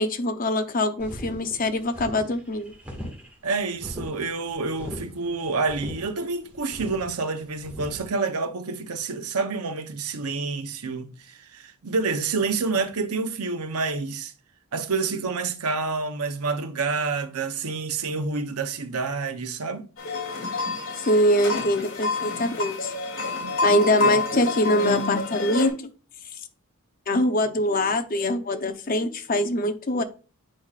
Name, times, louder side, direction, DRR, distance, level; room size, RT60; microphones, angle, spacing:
voice 1, 0.0-2.7 21.1-22.9 23.6-25.9 27.1-30.0, left 1 dB, 40° left, 0.7 m, -23 dB
sound 1, 1.0-8.1, equal, 5° right, 1.7 m, -39 dB
voice 2, 3.4-14.3 14.7-19.9 23.4-23.6, right 4 dB, 90° right, 0.8 m, -28 dB
sound 2, 20.0-25.7, left 3 dB, 60° left, 2.4 m, -28 dB
8.5 x 4.9 x 2.4 m
head